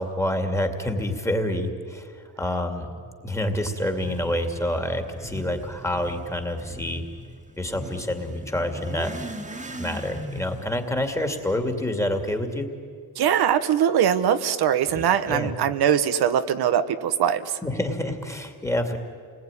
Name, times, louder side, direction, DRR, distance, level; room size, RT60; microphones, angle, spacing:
voice 1, 0.0-7.0 7.6-9.2 9.8-12.7 14.9-15.5 17.6-19.0, left 1 dB, 5° left, 5 dB, 2.5 m, -28 dB
Motorcycle / Accelerating revving vroom, 3.5-12.4, equal, 20° right, 2.0 m, -39 dB
voice 2, 13.2-17.6, right 9 dB, 75° right, 10 dB, 1.3 m, -22 dB
29.5 x 20.5 x 9.9 m, 2.2 s
cardioid pair, 140°, 38 cm